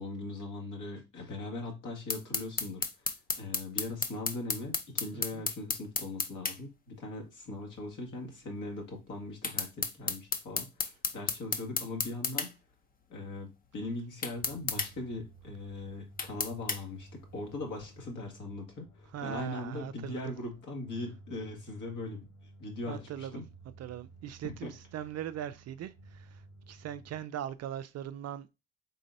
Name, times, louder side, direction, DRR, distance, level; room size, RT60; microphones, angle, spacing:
voice 1, 0.0-2.8 3.3-10.7 11.1-12.5 13.1-22.3 22.6-23.4 24.6-24.7, left 2 dB, 55° left, 1.7 m, -40 dB
sound 1, 2.1-6.6 9.4-12.5 14.2-14.9 16.2-16.8, left 4 dB, 25° left, 0.7 m, -32 dB
sound 2, 14.3-27.2, right 2 dB, 70° left, 2.2 m, -55 dB
voice 2, 19.1-20.2 22.9-23.4 23.8-28.5, right 10 dB, 45° right, 0.4 m, -40 dB
4.0 x 3.9 x 2.6 m
hypercardioid pair, 60°, 36 cm